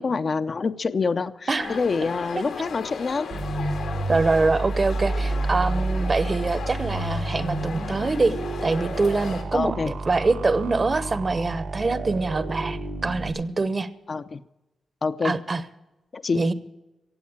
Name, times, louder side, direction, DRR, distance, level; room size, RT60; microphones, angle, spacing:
voice 1, 0.0-3.3 9.5-9.9 14.1-14.4 15.0-15.4 16.1-16.4, left 4 dB, 50° left, 10 dB, 0.7 m, -26 dB
sound 1, 1.5-9.4, left 5 dB, 90° left, 2.4 m, -36 dB
voice 2, 1.5-1.8 4.1-8.3 8.6-9.8 10.1-13.9 15.2-15.6 16.3-16.5, right 3 dB, 35° right, 15 dB, 1.0 m, -24 dB
sound 2, 3.3-13.3, right 2 dB, 90° right, 3.7 m, -30 dB
16.0 x 8.3 x 8.8 m, 1.0 s
cardioid pair, 85°, 0 cm